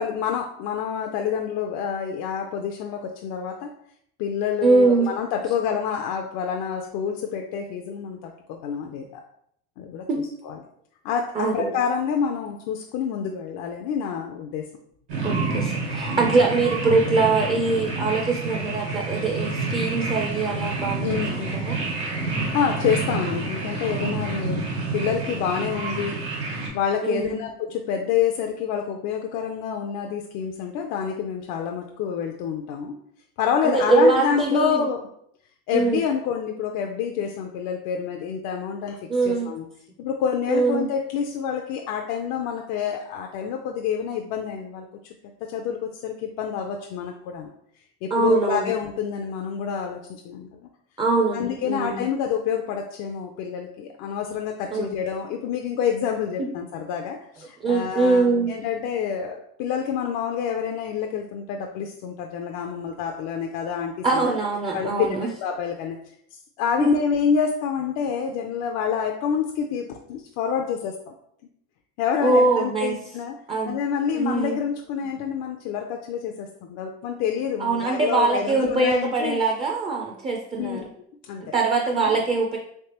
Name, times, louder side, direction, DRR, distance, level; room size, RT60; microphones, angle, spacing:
voice 1, 0.0-3.7 4.2-9.2 9.8-10.0 10.4-10.6 11.0-14.6 16.1-16.4 21.0-21.5 22.3-26.2 26.7-33.0 33.4-35.1 35.7-39.0 39.3-39.6 40.0-45.1 45.5-47.5 48.0-50.7 51.3-64.3 64.7-66.0 66.6-71.1 72.0-73.4 73.6-79.4 80.6-80.9 81.2-81.5 81.9-82.2, left 7 dB, 65° left, 2 dB, 0.5 m, -27 dB
voice 2, 4.6-5.1 10.1-10.2 11.4-11.7 15.2-21.8 27.0-27.4 33.6-34.8 35.7-36.0 39.1-39.5 40.5-40.9 48.1-48.7 51.0-52.1 54.7-54.9 57.6-58.5 64.0-65.3 66.8-66.9 72.2-73.0 73.5-73.8 74.2-74.6 77.6-80.8 81.5-82.6, right 3 dB, 20° right, 0 dB, 0.4 m, -22 dB
sound 1, 15.1-26.7, right 3 dB, 75° right, 1.5 m, -28 dB
3.3 x 3.2 x 2.9 m, 0.70 s
supercardioid pair, 125°, 31 cm